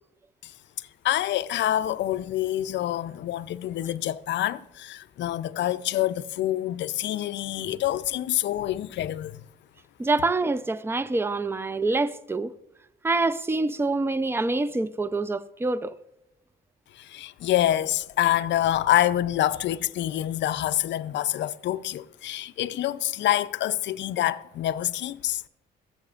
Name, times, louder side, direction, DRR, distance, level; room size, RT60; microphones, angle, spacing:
voice 1, 1.0-9.4 17.0-25.4, left 13 dB, 65° left, 0.4 m, -26 dB
voice 2, 10.0-12.5 13.0-15.9, right 3 dB, 10° right, 0.4 m, -26 dB
13.5 x 7.5 x 2.4 m
cardioid pair, 90°, 20 cm